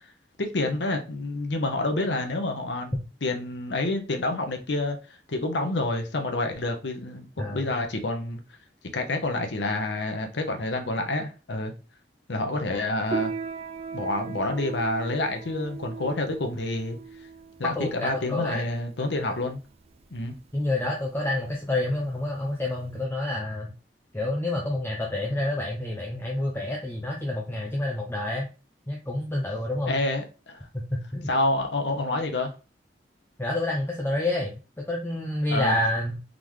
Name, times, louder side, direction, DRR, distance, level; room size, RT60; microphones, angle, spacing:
voice 1, 0.4-5.0 5.3-8.4 8.9-11.7 12.3-13.3 13.9-17.0 17.6-19.6 20.1-20.4 29.9-30.6 31.3-32.5 35.5-35.8, left 2 dB, 75° left, 0.9 m, -28 dB
voice 2, 7.4-7.7 17.8-18.6 19.3-19.4 20.5-23.7 24.1-28.5 28.9-30.0 30.7-31.3 33.4-36.2, left 1 dB, 15° left, 0.7 m, -28 dB
Piano, 13.1-23.0, right 5 dB, 35° right, 0.4 m, -38 dB
3.8 x 3.6 x 3.1 m
head